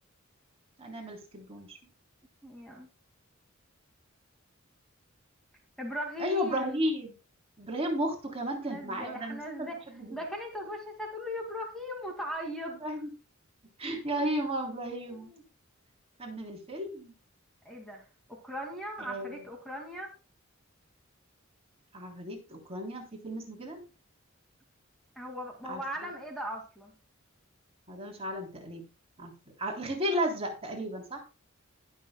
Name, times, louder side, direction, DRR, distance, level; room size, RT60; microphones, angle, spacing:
voice 1, 0.8-1.8 6.2-7.1 7.6-10.2 12.7-13.1 13.8-15.3 16.2-17.1 19.0-19.4 21.9-23.8 25.7-25.8 27.9-28.8 29.2-29.3 29.6-31.2, equal, 30° right, 1 dB, 3.5 m, -34 dB
voice 2, 2.4-2.9 5.8-6.8 8.6-9.8 10.1-12.7 14.2-14.3 15.3-15.4 17.6-18.0 18.3-20.1 25.2-26.9, equal, ahead, 1 dB, 2.3 m, -38 dB
20.0 x 7.2 x 2.3 m, 0.32 s
head